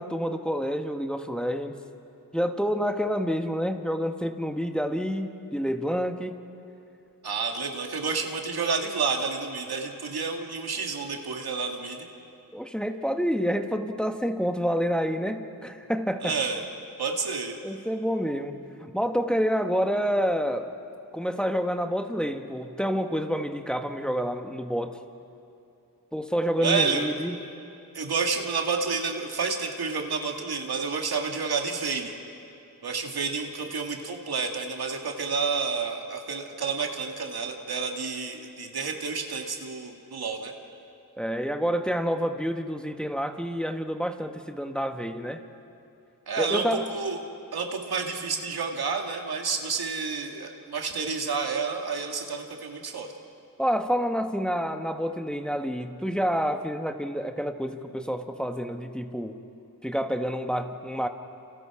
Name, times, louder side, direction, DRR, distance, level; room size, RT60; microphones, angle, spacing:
voice 1, 0.0-1.8 2.3-6.3 12.5-16.4 17.6-20.7 21.1-25.0 26.1-27.3 41.2-45.4 46.4-46.9 53.6-59.4 59.8-61.1, equal, ahead, 5 dB, 1.4 m, -28 dB
voice 2, 7.2-12.1 16.2-16.6 17.0-17.5 26.6-27.1 27.9-32.1 32.8-40.5 46.3-47.2 47.5-53.1, right 5 dB, 90° right, 2 dB, 2.2 m, -30 dB
29.0 x 28.5 x 5.0 m, 2.7 s
cardioid pair, 60°, 37 cm